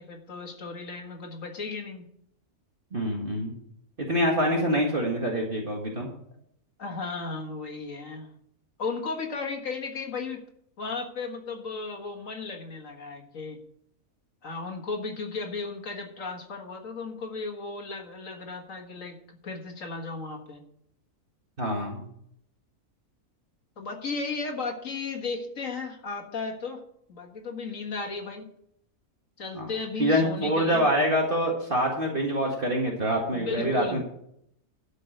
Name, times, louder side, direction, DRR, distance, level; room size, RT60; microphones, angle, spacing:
voice 1, 0.0-2.1 4.5-4.8 6.8-8.3 8.8-10.4 10.8-13.6 14.4-20.6 23.8-26.8 27.1-28.5 29.4-30.9 33.3-34.0, left 4 dB, 65° left, 3 dB, 2.1 m, -35 dB
voice 2, 2.9-3.5 4.1-6.1 21.6-22.1 29.5-29.7 30.0-34.0, equal, 40° right, -1 dB, 1.9 m, -25 dB
12.5 x 5.4 x 7.8 m, 0.72 s
omnidirectional pair, 1.5 m